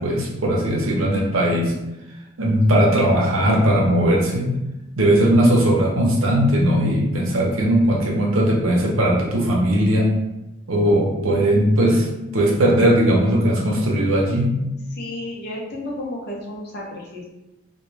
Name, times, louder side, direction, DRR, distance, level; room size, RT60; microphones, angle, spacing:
voice 1, 0.0-1.7 2.4-4.5 5.0-10.1 10.7-12.1 12.3-14.5, equal, 90° right, -1 dB, 0.6 m, -18 dB
voice 2, 14.9-17.3, left 1 dB, 55° left, -3 dB, 0.6 m, -32 dB
2.2 x 2.1 x 3.1 m, 0.95 s
head